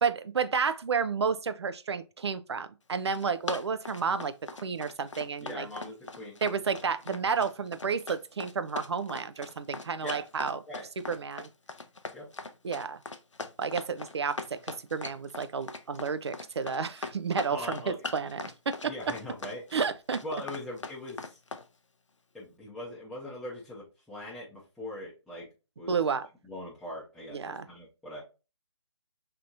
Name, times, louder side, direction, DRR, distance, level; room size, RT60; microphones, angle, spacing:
voice 1, 0.0-4.3 4.6-5.7 6.4-10.6 11.1-11.5 12.6-13.0 13.6-14.4 14.6-18.8 19.7-20.2 25.9-26.3 27.3-27.7, right 5 dB, 65° right, 0.4 m, -31 dB
Run, 2.9-21.7, left 3 dB, 85° left, 0.5 m, -40 dB
voice 2, 5.4-6.4 10.0-10.3 10.7-10.9 12.1-12.3 17.5-18.3 18.8-19.6 20.2-21.4 22.3-25.5 25.8-26.0 26.5-28.2, left 1 dB, ahead, 0.6 m, -41 dB
3.5 x 2.9 x 2.5 m
figure-of-eight pair, 145°, 15 cm